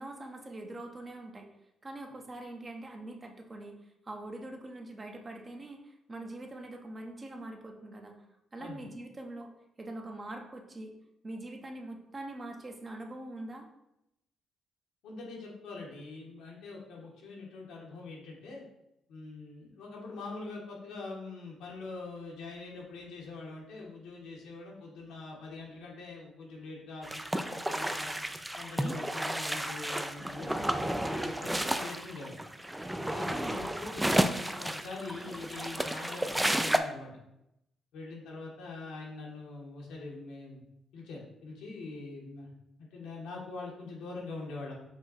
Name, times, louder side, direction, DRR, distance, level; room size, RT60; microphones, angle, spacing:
voice 1, 0.0-1.5 1.8-3.8 4.0-8.2 8.5-9.5 9.8-10.9 11.2-13.7 33.3-33.7, right 1 dB, 30° right, 3 dB, 0.7 m, -43 dB
voice 2, 15.0-18.7 19.1-28.2 28.6-32.4 33.1-37.1 37.9-40.6 40.9-42.5 42.8-44.7, left 3 dB, 90° left, -2 dB, 1.2 m, -43 dB
sound 1, 27.0-36.8, right 1 dB, 5° right, 0.3 m, -32 dB
5.3 x 2.3 x 4.1 m, 0.84 s
cardioid pair, 90°, 0 cm